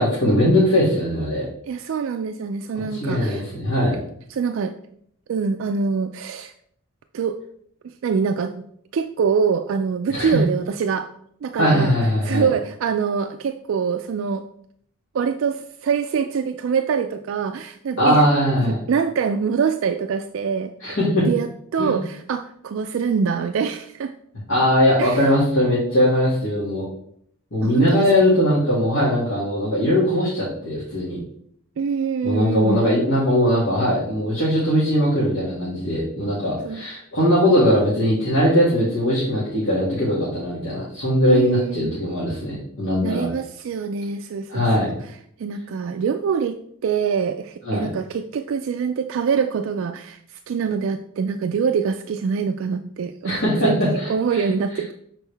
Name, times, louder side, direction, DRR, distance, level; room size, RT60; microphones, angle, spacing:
voice 1, 0.0-1.4 2.7-3.9 10.1-10.4 11.6-12.5 18.0-18.8 20.8-21.3 21.8-22.0 24.5-26.8 27.5-31.2 32.2-43.3 44.5-44.9 47.6-47.9 53.2-54.4, equal, 65° left, -10 dB, 2.0 m, -20 dB
voice 2, 1.7-3.4 4.3-4.7 5.3-6.5 7.1-7.4 7.8-8.5 8.9-11.1 11.4-11.9 12.2-14.4 15.1-18.2 18.6-20.7 21.2-24.2 25.0-25.2 27.6-28.4 31.8-32.9 36.6-36.8 41.3-41.9 43.0-44.9 45.4-46.6 46.8-54.9, right 6 dB, 65° right, 7 dB, 0.3 m, -24 dB
6.4 x 4.4 x 3.3 m, 0.67 s
head